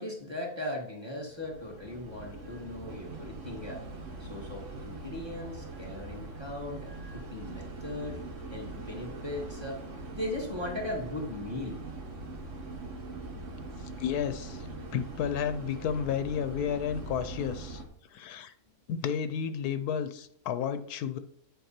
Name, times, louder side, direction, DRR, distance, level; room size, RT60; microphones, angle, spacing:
voice 1, 0.0-3.8 4.2-8.2 8.5-9.8 10.1-11.8, left 1 dB, 15° right, -2 dB, 2.1 m, -38 dB
sound 1, 1.2-17.9, right 2 dB, 50° right, 1.6 m, -42 dB
voice 2, 14.0-17.8 18.1-18.5 18.9-21.2, left 8 dB, 80° left, 11 dB, 1.1 m, -32 dB
9.2 x 5.4 x 4.3 m, 0.68 s
omnidirectional pair, 1.6 m